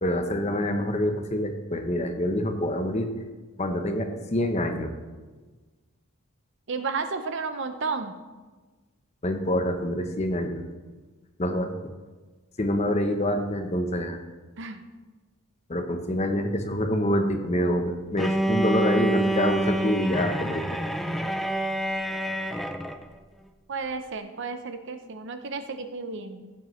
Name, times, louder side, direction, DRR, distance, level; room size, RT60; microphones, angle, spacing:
voice 1, 0.0-3.1 3.6-4.9 9.2-10.6 11.4-11.7 12.6-14.2 15.7-20.6, left 1 dB, 30° left, 6 dB, 0.8 m, -26 dB
voice 2, 6.7-8.1 14.6-14.8 23.7-26.5, right 4 dB, 55° right, 9 dB, 0.7 m, -32 dB
Bowed string instrument, 18.2-23.0, right 1 dB, ahead, 0.3 m, -27 dB
14.5 x 7.9 x 3.2 m, 1.3 s
head